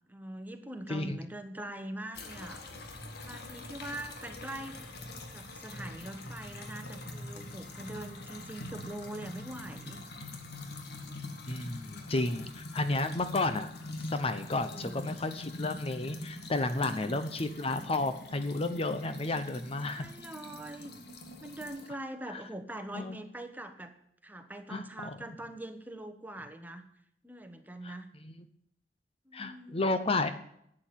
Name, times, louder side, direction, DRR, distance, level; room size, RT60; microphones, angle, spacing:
voice 1, 0.1-2.6 3.2-4.9 5.3-10.0 14.5-15.2 16.7-17.2 19.8-20.9 21.4-24.0 24.2-26.9 27.2-28.1 29.3-30.3, right 1 dB, 10° right, 7 dB, 1.3 m, -43 dB
sound 1, 2.1-21.9, left 2 dB, 65° left, 2.1 m, -44 dB
voice 2, 11.5-13.7 14.0-20.1 22.3-22.4 22.9-23.2 24.7-25.2 27.8-27.9 28.2-28.5 29.3-30.3, left 2 dB, 35° left, 10 dB, 0.8 m, -32 dB
11.5 x 8.8 x 9.0 m, 0.73 s
head